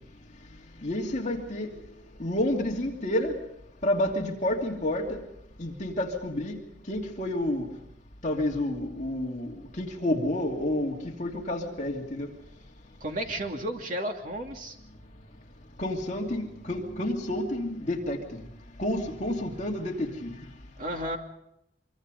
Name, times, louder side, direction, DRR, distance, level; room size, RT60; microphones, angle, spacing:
voice 1, 0.8-1.7 2.2-3.4 3.8-5.2 5.6-6.6 6.9-7.7 8.2-12.3 15.8-18.4 18.8-20.4, left 1 dB, 40° left, 0 dB, 2.8 m, -29 dB
voice 2, 13.0-14.8 20.8-21.2, right 1 dB, 45° right, 3 dB, 2.7 m, -32 dB
25.0 x 24.0 x 5.3 m, 0.80 s
head